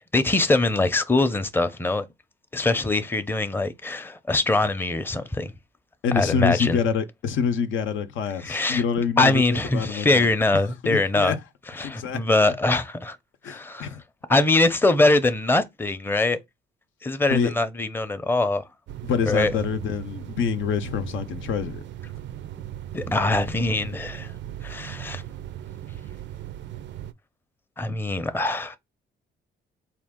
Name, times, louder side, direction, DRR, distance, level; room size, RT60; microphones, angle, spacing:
voice 1, 0.1-2.1 2.5-5.5 6.1-6.8 8.4-8.8 9.2-11.4 11.7-13.2 13.4-13.9 14.3-16.4 17.0-18.6 19.3-19.6 22.9-24.3 24.6-25.2 27.8-28.8, left 2 dB, 10° left, 0.6 m, -23 dB
voice 2, 6.0-9.4 9.7-10.3 10.8-11.4 11.8-12.2 13.4-14.0 17.3-17.5 19.0-21.8, left 6 dB, 80° left, 0.7 m, -26 dB
sound 1, 18.9-27.1, right 12 dB, 65° right, 0.5 m, -37 dB
4.3 x 2.4 x 3.6 m
cardioid pair, 90°, 20 cm